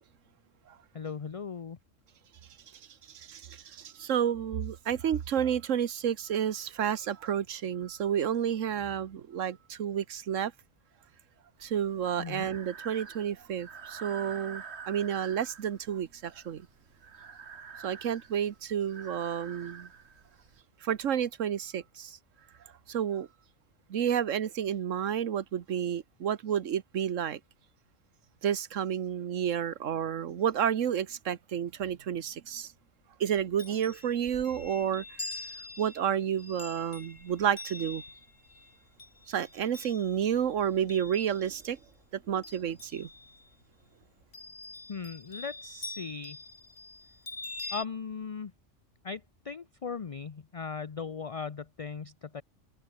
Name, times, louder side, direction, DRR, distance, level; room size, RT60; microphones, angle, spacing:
voice 1, 0.9-1.8 12.2-12.5 44.9-46.4 47.7-48.5 49.0-52.4, left 5 dB, 35° left, 0.6 m, -38 dB
voice 2, 3.1-10.5 11.6-16.7 17.8-19.9 20.8-22.2 22.9-23.3 23.9-27.4 28.4-32.7 33.2-35.0 35.8-38.0 39.3-41.8 42.3-43.1, right 9 dB, 85° right, 1.4 m, -30 dB
Breathing, 11.6-20.6, right 5 dB, 60° right, 1.8 m, -47 dB
Chime, 33.3-41.8 42.2-43.5 44.3-47.9, left 2 dB, 55° left, 3.6 m, -45 dB
omnidirectional pair, 1.3 m